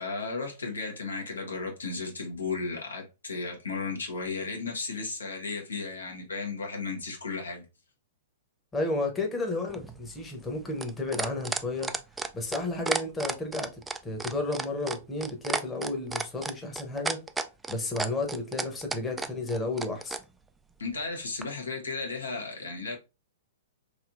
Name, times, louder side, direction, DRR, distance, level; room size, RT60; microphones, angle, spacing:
voice 1, 0.0-7.6 20.8-23.0, left 4 dB, 85° left, 1.0 m, -34 dB
voice 2, 8.7-11.9 12.3-13.7 14.0-17.2 17.7-20.2, left 2 dB, 15° left, 0.9 m, -32 dB
sound 1, 9.7-20.2 21.4-21.5, right 3 dB, 10° right, 0.3 m, -32 dB
3.2 x 2.8 x 2.5 m
hypercardioid pair, 110°, 0 cm